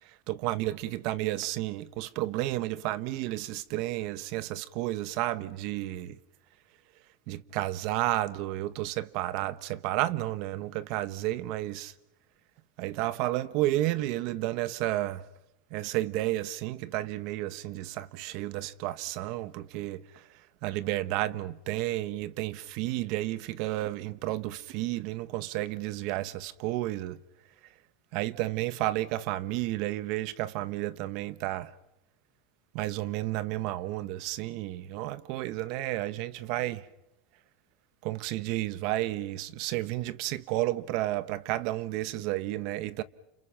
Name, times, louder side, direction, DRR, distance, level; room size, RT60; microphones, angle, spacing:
voice 1, 0.0-6.2 7.3-11.9 12.8-15.2 15.7-27.2 28.1-31.7 32.7-36.9 38.0-43.0, right 16 dB, 50° right, 1.1 m, -32 dB
30.0 x 27.5 x 5.9 m
supercardioid pair, 170°, 0 cm